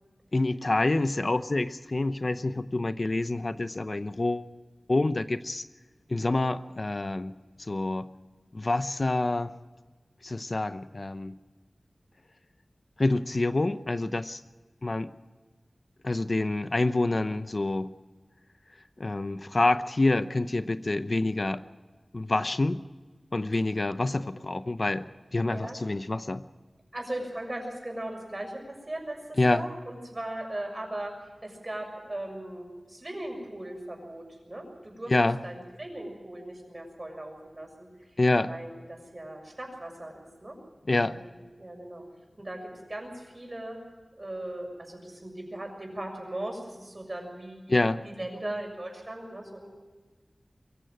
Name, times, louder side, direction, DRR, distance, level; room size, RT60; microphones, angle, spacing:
voice 1, 0.3-4.5 4.9-5.6 6.1-7.3 7.6-8.1 8.5-9.5 10.2-11.3 13.0-14.4 14.8-15.1 16.0-17.9 19.0-21.6 22.1-22.8 23.3-26.4 29.4-29.6 35.1-35.4 38.2-38.5 40.9-41.2 47.7-48.0, left 2 dB, 50° left, 12 dB, 0.7 m, -27 dB
voice 2, 25.5-25.8 26.9-29.2 29.5-31.1 31.4-35.1 35.4-37.9 38.5-40.6 41.0-42.0 42.4-43.8 44.2-49.7, right 1 dB, 35° right, 2 dB, 6.7 m, -38 dB
23.5 x 15.5 x 7.6 m, 1.3 s
wide cardioid pair, 65°, 0 cm